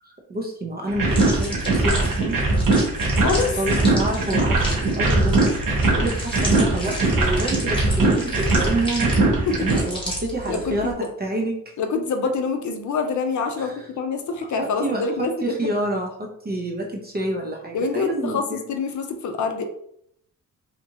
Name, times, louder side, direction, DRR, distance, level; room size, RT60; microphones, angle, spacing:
voice 1, 0.0-2.4 3.6-5.4 5.8-11.6 13.6-13.8 14.6-18.6, right 1 dB, 30° right, 0 dB, 0.5 m, -28 dB
sound 1, 0.9-9.8, right 2 dB, 65° right, 0.9 m, -21 dB
sound 2, 1.1-10.9, equal, 15° left, 1.2 m, -33 dB
voice 2, 3.2-3.6 9.5-9.7 10.5-10.9 11.8-15.7 17.7-19.6, left 4 dB, 55° left, 6 dB, 0.5 m, -26 dB
2.9 x 2.4 x 2.7 m, 0.70 s
cardioid pair, 105°, 35 cm